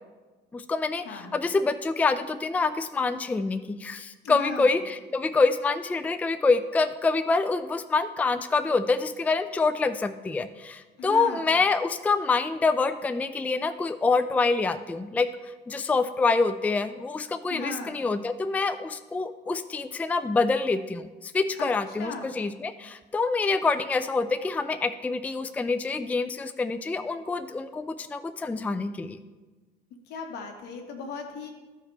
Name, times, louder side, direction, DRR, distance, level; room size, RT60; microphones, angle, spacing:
voice 1, 0.5-1.0 1.3-15.3 15.7-29.2, left 4 dB, 10° left, 11 dB, 0.3 m, -26 dB
voice 2, 1.0-1.3 4.2-4.8 11.0-11.5 17.5-18.0 21.6-21.7 22.0-22.3 30.1-31.5, left 4 dB, 80° left, 3 dB, 1.4 m, -37 dB
14.0 x 4.9 x 3.3 m, 1.2 s
cardioid pair, 110°, 17 cm